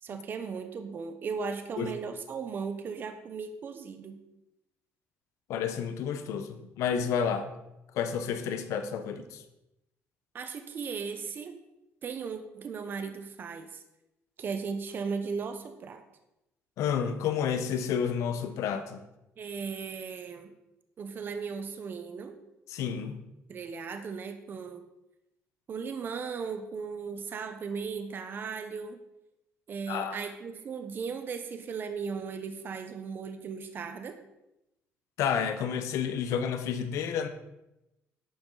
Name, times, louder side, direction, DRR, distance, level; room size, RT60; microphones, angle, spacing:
voice 1, 0.0-4.2 10.3-11.5 12.0-13.8 14.4-16.0 19.4-20.5 21.0-22.3 23.5-24.8 25.7-29.0 29.7-34.2, right 5 dB, 45° right, 7 dB, 1.1 m, -37 dB
voice 2, 5.5-7.5 7.9-9.4 16.8-19.0 22.7-23.2 29.9-30.2 35.2-37.3, left 7 dB, 80° left, 9 dB, 1.1 m, -30 dB
11.5 x 8.8 x 4.1 m, 0.91 s
cardioid pair, 130°, 5 cm